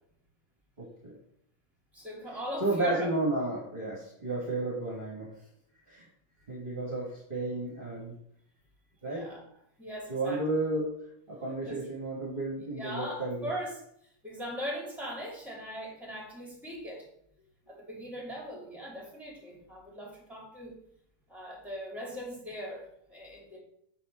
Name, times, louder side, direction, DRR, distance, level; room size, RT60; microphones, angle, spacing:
voice 1, 0.8-1.1 2.6-5.3 5.9-6.1 6.5-8.2 9.0-9.3 10.1-10.9 11.3-13.5, right 2 dB, 35° right, -3 dB, 1.6 m, -32 dB
voice 2, 1.9-3.1 9.0-9.4 9.8-10.4 11.6-11.8 12.7-13.8 14.2-17.1 17.7-20.8 21.3-23.6, equal, ahead, -2 dB, 2.3 m, -39 dB
6.9 x 4.2 x 5.5 m, 0.71 s
omnidirectional pair, 1.7 m